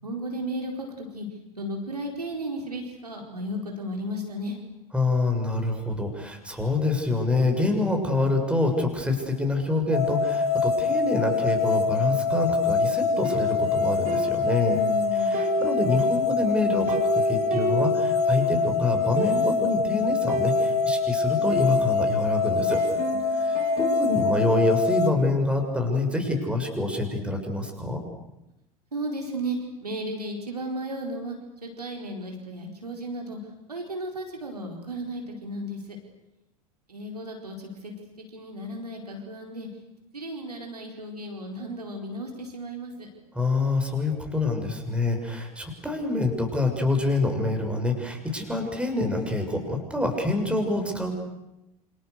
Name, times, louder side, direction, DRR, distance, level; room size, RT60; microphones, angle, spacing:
voice 1, 0.0-1.3 1.6-4.6 14.6-15.4 23.1-23.7 28.9-31.4 31.6-33.4 33.7-36.0 36.9-37.9 38.3-39.7 40.1-43.1, right 1 dB, 90° right, 1 dB, 4.6 m, -34 dB
voice 2, 4.9-14.8 15.1-22.8 23.4-28.0 43.3-51.2, left 2 dB, 5° right, 4 dB, 6.8 m, -26 dB
sound 1, 9.9-25.1, left 4 dB, 85° left, 2.3 m, -24 dB
sound 2, 13.2-15.0 15.3-18.6 18.9-19.0 19.2-19.8 20.3-22.3 22.7-24.4, right 6 dB, 45° right, 3.8 m, -34 dB
28.0 x 26.5 x 6.7 m, 0.91 s
figure-of-eight pair, 80°, 19 cm